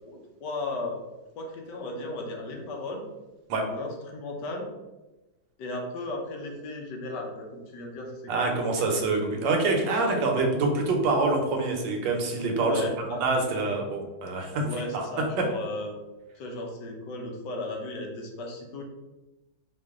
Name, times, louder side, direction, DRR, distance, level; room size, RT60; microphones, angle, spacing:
voice 1, 0.1-1.0 1.3-3.0 3.7-4.7 5.6-8.7 10.2-10.4 12.5-13.2 14.5-16.0 16.4-18.8, left 2 dB, 70° left, 1 dB, 1.4 m, -35 dB
voice 2, 8.3-14.7 14.9-15.0, right 3 dB, 75° right, 2 dB, 1.5 m, -26 dB
4.8 x 2.6 x 3.5 m, 1.1 s
omnidirectional pair, 2.0 m